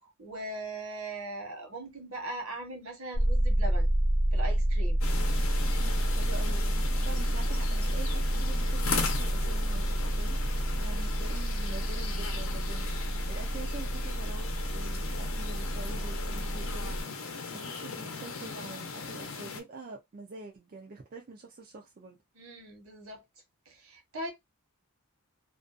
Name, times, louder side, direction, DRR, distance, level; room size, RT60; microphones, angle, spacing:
voice 1, 0.0-3.9 4.3-5.0 7.2-7.4 22.3-23.2 23.7-24.3, right 1 dB, 70° right, 1.1 m, -40 dB
sound 1, 3.1-17.0, right 1 dB, 35° left, 1.0 m, -29 dB
sound 2, 5.0-19.6, left 5 dB, 65° left, 0.7 m, -38 dB
voice 2, 5.8-10.4 10.8-17.0 17.5-22.2, right 3 dB, 40° right, 0.4 m, -46 dB
2.5 x 2.2 x 2.5 m
head